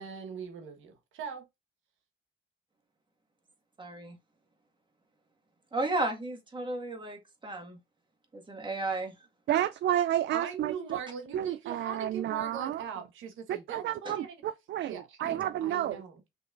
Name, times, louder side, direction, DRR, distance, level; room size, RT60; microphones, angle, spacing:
voice 1, 0.0-1.5 10.3-14.4 14.8-16.2, right 6 dB, 80° right, 1.3 m, -41 dB
voice 2, 3.8-4.2 5.7-7.8 8.3-9.1 14.1-14.2 15.2-15.4, right 2 dB, 25° right, 1.8 m, -34 dB
voice 3, 9.5-11.0 11.3-12.8 13.5-16.0, right 12 dB, 60° right, 0.4 m, -31 dB
5.9 x 3.2 x 2.5 m
cardioid pair, 90°, 20 cm